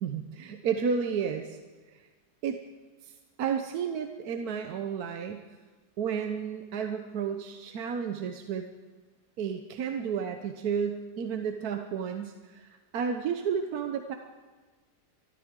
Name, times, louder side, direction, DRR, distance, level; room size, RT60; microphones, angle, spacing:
voice 1, 0.0-1.6 1.9-2.0 2.4-2.6 3.0-5.4 6.0-8.7 9.4-14.2, right 7 dB, 65° right, 5 dB, 1.2 m, -32 dB
25.0 x 13.0 x 3.7 m, 1.4 s
omnidirectional pair, 1.8 m